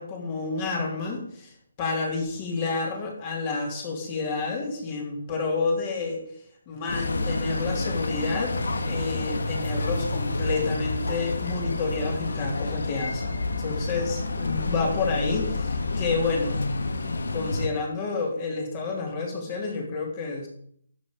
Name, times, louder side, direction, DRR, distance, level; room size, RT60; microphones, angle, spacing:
voice 1, 0.0-6.2 6.7-13.3 13.6-16.6 17.0-20.5, left 4 dB, 25° left, 1 dB, 3.0 m, -30 dB
sound 1, 6.9-17.7, left 2 dB, 80° left, 1.6 m, -29 dB
12.5 x 7.4 x 5.2 m, 0.65 s
hypercardioid pair, 165°, 0 cm